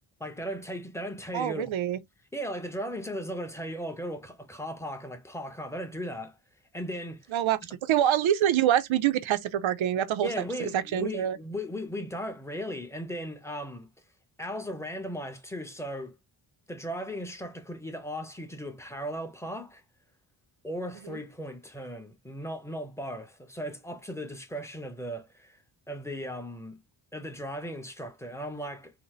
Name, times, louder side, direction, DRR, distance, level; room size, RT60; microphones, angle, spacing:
voice 1, 0.2-1.7 2.3-6.4 6.7-7.3 10.2-13.9 14.4-16.1 16.7-19.8 20.6-25.6 25.9-26.8 27.1-28.9, equal, 5° left, 0.9 m, -37 dB
voice 2, 1.3-2.0 7.3-10.3 10.6-11.4 21.1-21.2, right 11 dB, 85° right, 0.6 m, -26 dB
3.9 x 2.1 x 3.0 m
cardioid pair, 75°, 46 cm